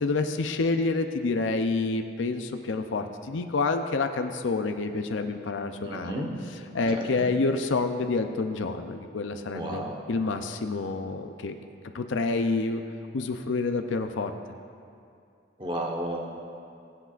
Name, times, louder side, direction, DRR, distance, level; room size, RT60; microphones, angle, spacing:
voice 1, 0.0-6.2 6.5-11.5 11.9-12.8 13.1-14.3, left 3 dB, 80° left, 6 dB, 0.5 m, -28 dB
voice 2, 5.8-6.3 6.9-7.1 9.5-9.9 15.6-16.6, right 1 dB, 25° right, 0 dB, 1.1 m, -33 dB
22.5 x 7.9 x 2.5 m, 2.5 s
head